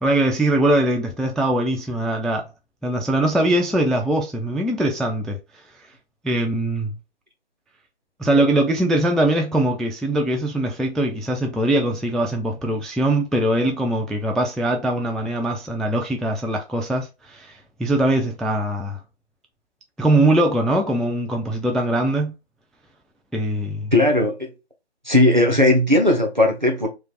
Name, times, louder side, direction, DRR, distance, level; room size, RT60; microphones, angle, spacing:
voice 1, 0.0-2.5 2.8-5.4 6.2-7.0 8.2-19.0 20.0-22.3 23.3-23.9, right 1 dB, ahead, 0.3 m, -21 dB
voice 2, 23.9-24.3 25.1-26.9, left 1 dB, 40° right, 0.8 m, -17 dB
3.2 x 2.4 x 3.7 m
figure-of-eight pair, 175°, 34 cm